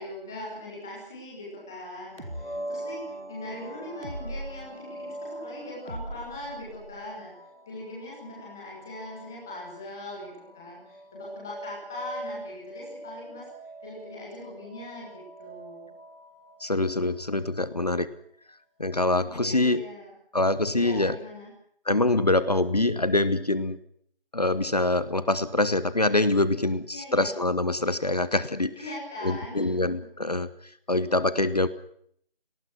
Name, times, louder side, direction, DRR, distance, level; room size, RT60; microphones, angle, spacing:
voice 1, 0.0-3.0 3.3-7.3 7.7-13.5 13.8-15.9 19.2-20.1 20.7-21.5 26.9-27.3 28.7-29.7 30.9-31.0, left 1 dB, 5° left, -4 dB, 1.4 m, -40 dB
sound 1, 2.2-17.8, right 1 dB, 70° left, 5.9 m, -43 dB
sound 2, 2.2-2.4 4.0-4.6 5.9-7.0, right 1 dB, 75° right, 4.3 m, -38 dB
voice 2, 16.6-18.1 18.8-19.8 20.3-21.2 21.9-23.8 24.3-28.7 29.2-30.5 30.9-31.7, left 2 dB, 45° left, 15 dB, 1.1 m, -24 dB
27.0 x 19.0 x 6.0 m, 0.66 s
figure-of-eight pair, 165°, 29 cm